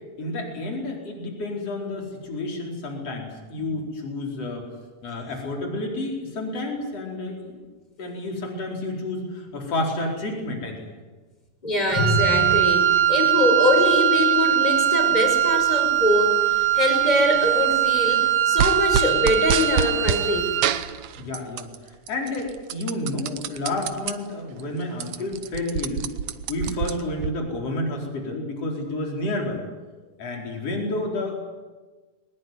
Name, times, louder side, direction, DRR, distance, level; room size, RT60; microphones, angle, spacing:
voice 1, 0.2-4.7 5.0-7.7 8.0-10.9 21.2-21.7 22.1-26.1 26.5-29.6 30.2-31.4, left 2 dB, 55° left, 0 dB, 5.5 m, -30 dB
voice 2, 11.6-20.5, left 1 dB, 15° left, 2 dB, 5.6 m, -23 dB
Wind instrument woodwind instrument, 11.9-20.8, right 11 dB, 55° right, 1.4 m, -21 dB
sound 1, 18.6-20.2 20.6-21.8 22.1-24.1 24.6-24.7 24.9-27.3, right 9 dB, 70° right, 2.1 m, -27 dB
22.5 x 20.0 x 9.5 m, 1.3 s
omnidirectional pair, 3.4 m